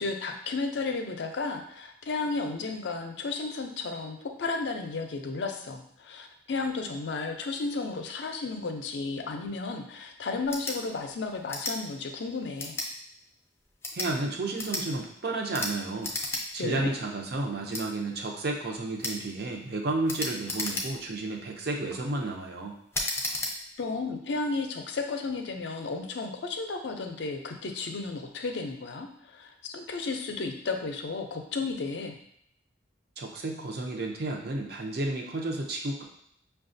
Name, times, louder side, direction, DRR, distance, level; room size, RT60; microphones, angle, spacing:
voice 1, 0.0-12.8 16.6-16.9 23.8-29.1 29.3-32.2, left 3 dB, 70° left, 4 dB, 0.5 m, -33 dB
sound 1, 10.4-10.8 11.5-11.8 12.6-12.9 13.7-14.1 14.6-14.8 15.5-15.7 16.0-16.4 16.8-16.9 17.7-17.8 19.0-19.2 20.1-21.1 21.7-22.0 22.9-23.5, left 2 dB, 15° left, 0.4 m, -33 dB
voice 2, 13.9-16.1 16.5-22.7 33.2-36.0, right 2 dB, 55° right, 1 dB, 0.6 m, -32 dB
5.6 x 2.3 x 2.6 m, 0.71 s
head